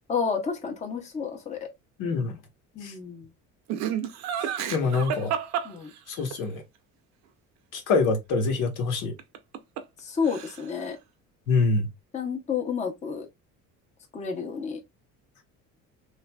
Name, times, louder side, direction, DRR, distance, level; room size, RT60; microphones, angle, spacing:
voice 1, 0.1-1.7 2.8-3.3 4.7-4.9 5.6-5.9 10.0-11.0 12.1-13.3 14.1-14.8, left 6 dB, 20° left, 0.7 m, -30 dB
voice 2, 2.0-2.4 2.8-2.9 4.4-5.3 6.1-6.6 7.7-9.1 11.5-11.9, left 4 dB, 80° left, 1.1 m, -25 dB
Laughter, 3.7-6.4 9.2-10.0 10.2-10.8, right 9 dB, 60° right, 0.6 m, -31 dB
3.1 x 2.4 x 2.2 m
cardioid pair, 135°, 31 cm